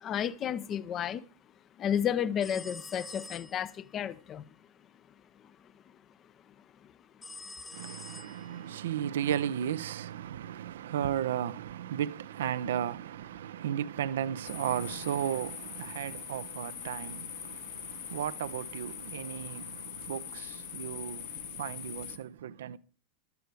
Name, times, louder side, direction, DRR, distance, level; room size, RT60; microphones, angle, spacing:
voice 1, 0.0-1.2 1.8-4.4, left 9 dB, 30° left, 0.8 m, -32 dB
sound 1, 2.4-3.8 7.2-8.8, left 3 dB, 10° left, 1.3 m, -46 dB
voice 2, 7.7-22.8, right 10 dB, 60° right, 0.7 m, -35 dB
sound 2, 14.4-22.2, left 10 dB, 55° left, 1.6 m, -43 dB
14.0 x 12.5 x 4.8 m
figure-of-eight pair, 90°, 0 cm